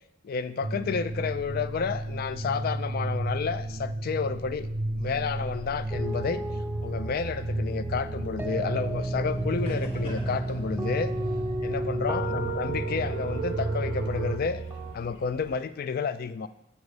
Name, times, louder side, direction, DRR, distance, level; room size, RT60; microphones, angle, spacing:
voice 1, 0.2-4.7 5.0-6.5 6.8-11.1 11.6-14.6 14.9-16.5, left 5 dB, 45° left, 14 dB, 0.3 m, -31 dB
sound 1, 0.6-14.4, right 1 dB, 60° right, 0.6 m, -33 dB
sound 2, 5.9-14.9, right 2 dB, 10° right, 0.5 m, -33 dB
sound 3, 9.3-15.6, left 1 dB, 30° left, 1.3 m, -48 dB
7.0 x 5.0 x 5.3 m, 0.81 s
head